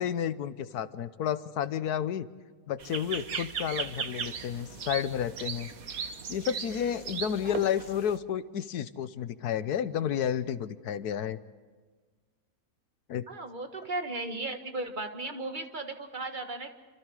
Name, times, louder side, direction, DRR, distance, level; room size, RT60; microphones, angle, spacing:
voice 1, 0.0-2.3 2.7-5.7 6.3-11.4 13.1-13.2, left 9 dB, 80° left, 14 dB, 1.4 m, -31 dB
sound 1, 2.8-8.2, right 6 dB, 65° right, 1.6 m, -37 dB
voice 2, 13.3-16.7, right 2 dB, 30° right, 6 dB, 1.7 m, -36 dB
28.0 x 26.5 x 4.9 m, 1.4 s
omnidirectional pair, 1.6 m